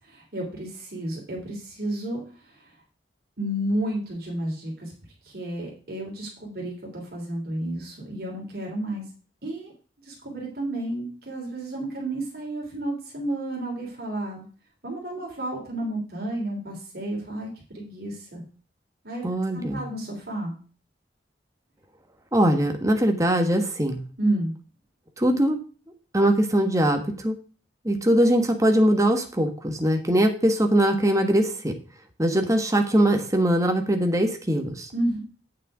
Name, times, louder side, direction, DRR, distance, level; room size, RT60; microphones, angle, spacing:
voice 1, 0.0-2.7 3.4-4.9 5.2-9.0 9.4-9.7 10.0-14.5 14.8-17.5 17.7-18.4 19.0-19.2 19.5-20.5 24.2-24.5 34.9-35.2, right 1 dB, 60° right, -2 dB, 3.3 m, -31 dB
voice 2, 19.2-19.9 22.3-24.0 25.2-25.6 26.1-27.3 27.8-31.7 32.2-34.9, right 1 dB, 20° right, 5 dB, 1.4 m, -21 dB
8.6 x 6.7 x 4.9 m, 0.38 s
head